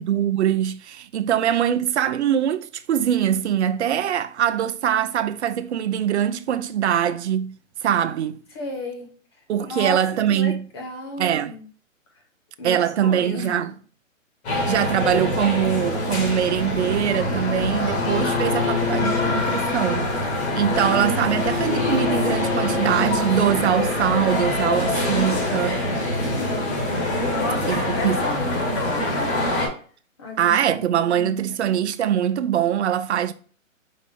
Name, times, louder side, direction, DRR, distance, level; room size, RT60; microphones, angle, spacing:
voice 1, 0.0-8.4 9.5-10.7 11.2-11.5 12.6-13.7 14.7-20.1 20.5-25.8 27.7-28.2 30.4-33.3, right 9 dB, 55° right, 0.5 m, -23 dB
voice 2, 8.5-9.1 9.6-10.0 10.3-11.6 12.6-13.5 26.4-29.4 30.2-31.6, left 2 dB, 20° left, 0.5 m, -34 dB
sound 1, 14.4-29.7, left 1 dB, 55° left, 1.8 m, -24 dB
Bowed string instrument, 17.9-24.0, left 9 dB, 80° left, 0.5 m, -30 dB
4.9 x 2.5 x 3.4 m
hypercardioid pair, 145°, 41 cm